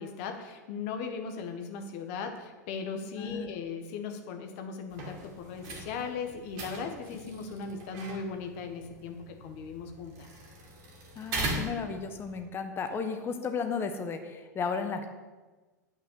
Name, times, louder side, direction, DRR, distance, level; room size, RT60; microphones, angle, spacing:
voice 1, 0.0-10.3, left 5 dB, 50° left, 5 dB, 1.5 m, -38 dB
voice 2, 3.2-3.5 11.1-15.1, left 5 dB, 25° left, 7 dB, 1.3 m, -34 dB
sound 1, 4.9-12.4, right 2 dB, 40° right, 2.3 m, -40 dB
9.0 x 5.8 x 7.9 m, 1.3 s
figure-of-eight pair, 90°, 10 cm